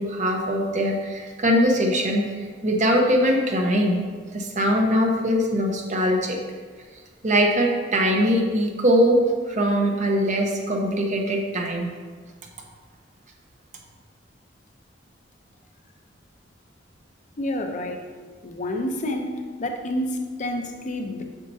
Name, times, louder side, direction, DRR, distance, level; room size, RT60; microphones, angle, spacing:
voice 1, 0.0-2.2 2.6-4.0 4.3-6.4 7.2-9.2 9.5-11.9, equal, 40° right, 1 dB, 0.9 m, -21 dB
voice 2, 17.4-18.1 18.4-19.3 19.6-21.2, left 1 dB, 40° left, 4 dB, 0.7 m, -28 dB
7.4 x 6.6 x 2.7 m, 1.5 s
head